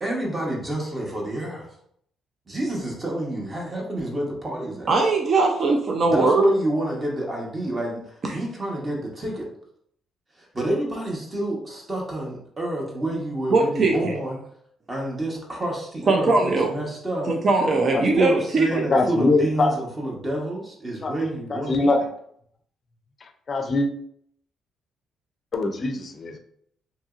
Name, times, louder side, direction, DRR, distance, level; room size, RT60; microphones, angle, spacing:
voice 1, 0.0-1.7 2.5-4.9 6.0-9.5 10.4-14.4 14.9-17.3 18.2-21.9, right 1 dB, 25° right, 0.9 m, -28 dB
voice 2, 4.9-6.4 8.2-8.4 13.5-14.1 16.1-16.7 17.3-18.8, right 3 dB, 45° right, 0.4 m, -20 dB
voice 3, 18.7-19.7 21.0-21.1 21.5-22.0 23.5-23.9 25.5-26.4, left 2 dB, 45° left, 0.4 m, -22 dB
2.8 x 2.7 x 2.4 m
cardioid pair, 90°, 0 cm